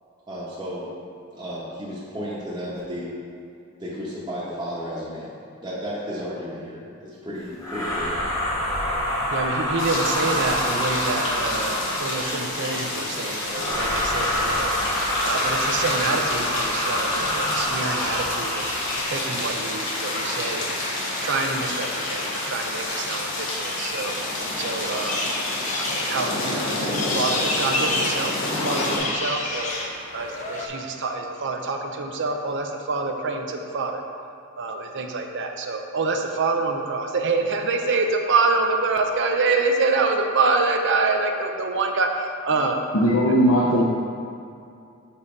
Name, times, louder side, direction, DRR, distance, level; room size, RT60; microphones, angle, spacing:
voice 1, 0.3-0.9 1.3-3.1 3.8-5.3 5.6-8.1, equal, 20° right, -11 dB, 1.0 m, -33 dB
sound 1, 7.6-12.2 13.5-19.0, equal, 15° left, 1.3 m, -26 dB
voice 2, 9.0-14.7 15.2-18.7 19.1-20.7 21.2-24.1 24.6-25.2 25.8-29.8 30.1-34.0 34.6-42.8 43.3-43.8, right 3 dB, 55° right, 4 dB, 0.5 m, -26 dB
sound 2, 9.8-29.0, left 2 dB, 55° left, 1.2 m, -29 dB
sound 3, 14.9-30.7, left 2 dB, 35° left, 0.6 m, -32 dB
voice 3, 42.9-43.8, equal, 75° left, -6 dB, 0.7 m, -18 dB
6.9 x 2.8 x 5.0 m, 2.5 s
head